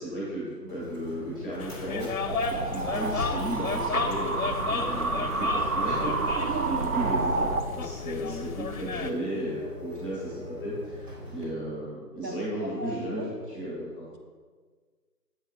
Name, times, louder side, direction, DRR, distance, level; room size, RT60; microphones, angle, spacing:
voice 1, 0.0-6.4 6.7-7.3 7.7-13.2 13.5-14.0, equal, 5° right, -9 dB, 1.8 m, -34 dB
Mechanisms, 0.7-11.5, equal, 40° right, 2.0 m, -43 dB
sound 1, 1.6-9.1, left 5 dB, 60° left, 0.5 m, -34 dB
sound 2, 2.3-7.6, right 3 dB, 60° right, 0.6 m, -29 dB
voice 2, 6.3-7.2 12.2-13.4, right 3 dB, 80° right, 2 dB, 1.4 m, -37 dB
7.3 x 4.3 x 4.7 m, 1.5 s
figure-of-eight pair, 175°, 48 cm